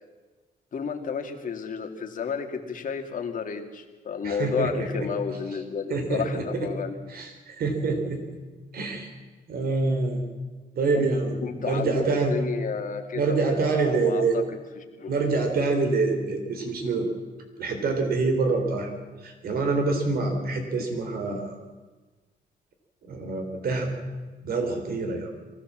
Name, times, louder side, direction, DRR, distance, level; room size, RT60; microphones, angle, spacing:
voice 1, 0.7-7.0 10.9-11.1 11.4-15.1 20.8-20.9, left 6 dB, 55° left, 5 dB, 2.3 m, -32 dB
voice 2, 4.2-5.1 5.9-6.7 7.1-8.3 8.7-9.1 9.5-10.2 10.8-12.4 13.1-14.4 15.1-17.1 17.6-18.9 19.2-21.6 23.0-23.9 24.4-25.3, right 3 dB, 65° right, 5 dB, 3.7 m, -26 dB
23.0 x 15.5 x 7.5 m, 1.3 s
cardioid pair, 115°, 17 cm